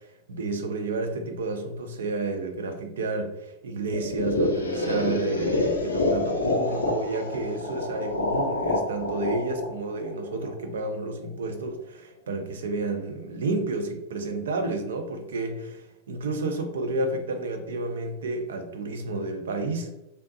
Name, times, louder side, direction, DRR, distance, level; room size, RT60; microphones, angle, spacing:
voice 1, 0.3-19.9, right 3 dB, 65° right, 6 dB, 0.4 m, -31 dB
sound 1, 3.9-10.8, left 2 dB, 80° left, 0.5 m, -27 dB
3.3 x 2.7 x 2.6 m, 0.94 s
figure-of-eight pair, 90°, 0 cm